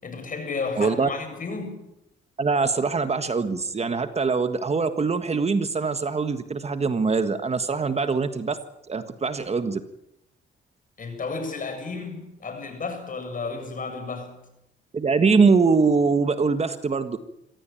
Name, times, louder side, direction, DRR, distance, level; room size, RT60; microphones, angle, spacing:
voice 1, 0.0-1.8 11.0-14.4, left 4 dB, 45° left, 7.6 m, -32 dB
voice 2, 0.8-1.1 2.4-8.6 8.9-9.8 14.9-17.2, right 4 dB, 30° right, 1.6 m, -23 dB
25.5 x 16.0 x 9.1 m
cardioid pair, 90°, 20 cm